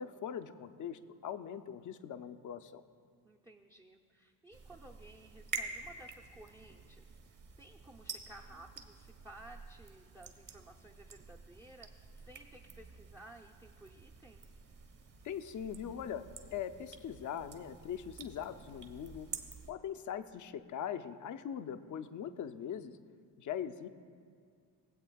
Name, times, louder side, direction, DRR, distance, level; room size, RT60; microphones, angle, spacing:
voice 1, 0.0-2.8 15.2-16.2 16.5-19.3 19.7-23.0 23.4-23.9, left 9 dB, 40° left, 9 dB, 0.6 m, -41 dB
voice 2, 3.2-7.2 7.6-14.5, right 2 dB, 10° right, 2 dB, 0.6 m, -56 dB
sound 1, 4.5-19.7, right 4 dB, 40° right, 1.1 m, -49 dB
21.0 x 7.8 x 2.3 m, 2.1 s
hypercardioid pair, 55°, 48 cm